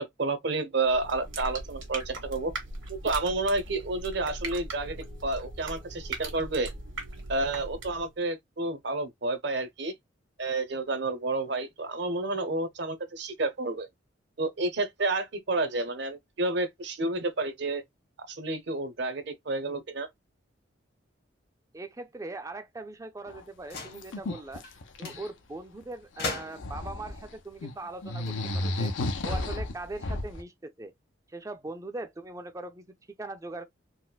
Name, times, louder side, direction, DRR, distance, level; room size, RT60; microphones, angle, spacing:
voice 1, 0.0-2.5 2.9-6.7 7.3-9.9 10.4-13.9 14.4-17.8 18.3-20.1, right 2 dB, 60° right, 0.7 m, -30 dB
sound 1, 0.8-8.1, right 2 dB, 85° right, 1.6 m, -39 dB
voice 2, 21.7-24.6 25.0-28.9 29.2-30.9 31.3-33.6, right 2 dB, 15° right, 0.4 m, -40 dB
sound 2, 23.3-23.4 23.7-25.3 26.2-27.3 27.6-27.7 28.0-30.4, left 2 dB, 75° left, 0.6 m, -33 dB
sound 3, 23.6-24.1 24.6-24.8 25.0-25.2 26.2-26.8 28.1-29.1, left 3 dB, 55° left, 1.2 m, -38 dB
4.1 x 2.1 x 2.2 m
head